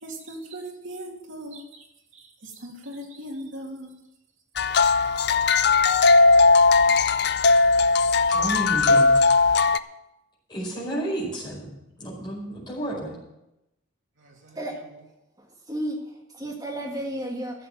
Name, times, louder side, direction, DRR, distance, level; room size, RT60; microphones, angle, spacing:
voice 1, 0.0-1.8 2.1-3.9 6.9-7.0 14.2-14.6, right 1 dB, 75° right, 2.8 m, -39 dB
sound 1, 4.6-9.8, left 4 dB, 55° left, 0.5 m, -18 dB
voice 2, 8.3-9.1 10.5-11.7 12.0-13.2, right 1 dB, 20° left, 5.1 m, -31 dB
voice 3, 15.4-17.7, right 1 dB, 20° right, 1.8 m, -33 dB
13.0 x 7.5 x 7.8 m
head